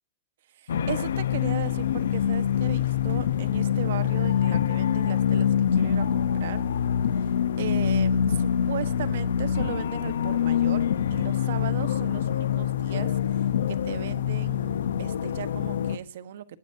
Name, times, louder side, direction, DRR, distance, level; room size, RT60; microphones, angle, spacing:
voice 1, 0.6-6.6 7.2-7.3 7.6-16.4, right 11 dB, 55° right, 12 dB, 1.3 m, -37 dB
sound 1, 0.7-16.0, left 9 dB, 80° left, 0.9 m, -25 dB
20.5 x 19.0 x 2.8 m, 0.38 s
supercardioid pair, 175°, 0 cm